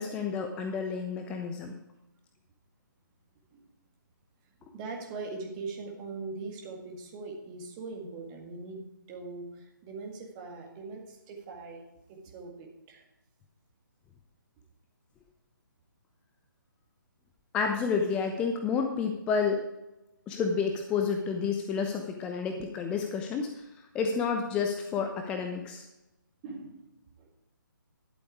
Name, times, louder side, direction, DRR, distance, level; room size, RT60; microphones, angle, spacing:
voice 1, 0.0-1.8 17.5-19.6 20.3-25.9, left 5 dB, 10° left, 4 dB, 0.5 m, -30 dB
voice 2, 4.5-11.8 12.1-13.1 26.4-27.3, right 3 dB, 20° right, 1 dB, 1.9 m, -41 dB
11.5 x 7.8 x 4.8 m, 0.96 s
figure-of-eight pair, 140°, 11 cm